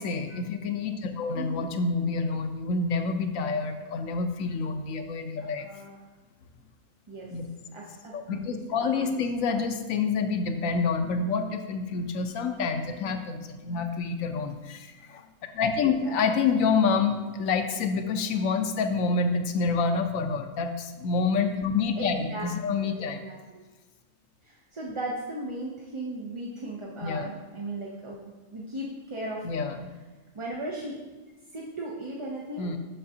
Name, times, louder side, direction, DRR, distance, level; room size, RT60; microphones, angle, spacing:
voice 1, 0.0-5.7 7.3-7.4 8.1-15.2 15.5-23.3 27.0-27.3 29.4-29.9 32.6-32.8, left 4 dB, 90° left, 6 dB, 1.1 m, -28 dB
voice 2, 1.3-1.7 5.4-6.0 7.1-7.3 7.7-9.1 9.5-9.6 15.8-16.4 21.9-22.5 22.9-23.4 24.4-29.6 30.3-31.0 31.5-32.7, right 1 dB, 35° right, -3 dB, 0.5 m, -37 dB
7.6 x 6.6 x 2.7 m, 1.2 s
omnidirectional pair, 1.3 m